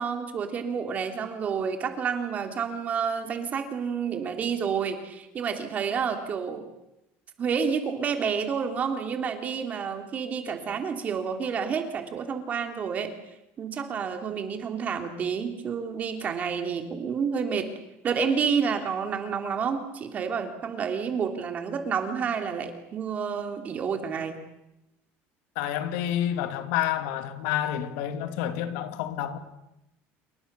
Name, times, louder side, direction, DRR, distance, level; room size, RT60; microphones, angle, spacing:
voice 1, 0.0-6.6 7.4-13.2 13.6-17.7 18.0-24.4, right 6 dB, 30° right, 3.1 m, -29 dB
voice 2, 25.6-29.4, left 11 dB, 85° left, 2.5 m, -29 dB
29.0 x 23.5 x 6.9 m
cardioid pair, 165°, 5 cm